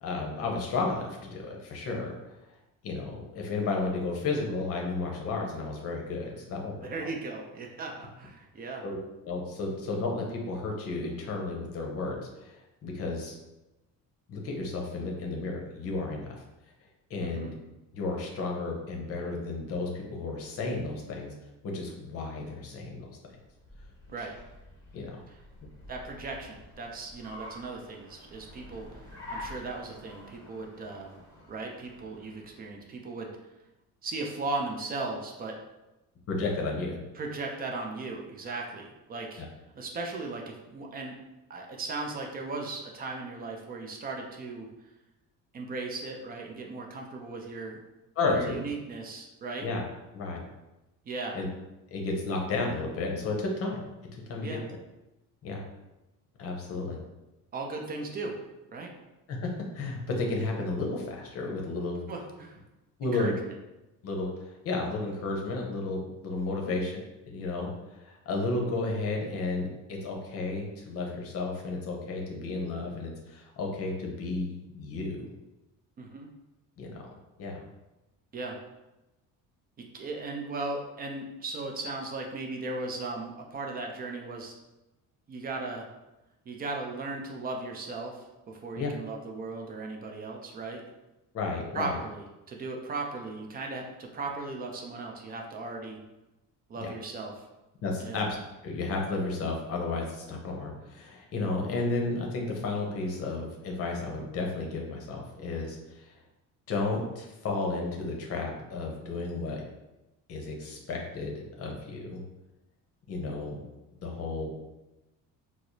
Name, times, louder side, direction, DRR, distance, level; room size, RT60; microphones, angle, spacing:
voice 1, 0.0-2.2 2.8-7.1 8.8-9.0 9.2-13.4 14.3-16.3 17.1-17.6 17.9-21.3 21.7-23.2 24.9-25.1 36.3-37.0 48.2-48.6 49.6-49.8 50.1-50.4 51.3-51.5 51.9-53.8 54.1-54.6 55.4-55.6 56.4-57.0 59.3-62.0 63.0-63.3 64.0-67.0 67.3-67.7 68.0-75.4 76.8-77.0 77.4-77.6 88.8-88.9 91.3-92.0 96.8-96.9 97.8-98.3 98.6-106.1 106.7-109.6 110.3-112.2 113.1-113.6 114.0-114.5, left 3 dB, 45° left, 0 dB, 0.7 m, -32 dB
voice 2, 6.8-8.8 17.2-17.5 24.1-24.3 25.9-29.0 29.3-31.2 31.5-33.4 34.0-35.6 37.1-39.4 39.8-41.2 41.5-44.7 45.5-47.8 48.3-49.7 51.1-51.4 54.4-54.6 57.5-58.3 58.7-58.9 62.1-62.6 63.0-63.3 66.7-66.8 76.0-76.3 78.3-78.6 79.9-84.5 85.3-85.9 86.5-90.8 91.7-96.0 96.7-97.4 98.0-98.2, right 3 dB, 25° right, 1 dB, 0.4 m, -37 dB
Car, 23.4-32.8, left 1 dB, 10° left, 0.9 m, -48 dB
4.6 x 2.0 x 2.6 m, 1.0 s
cardioid pair, 155°, 34 cm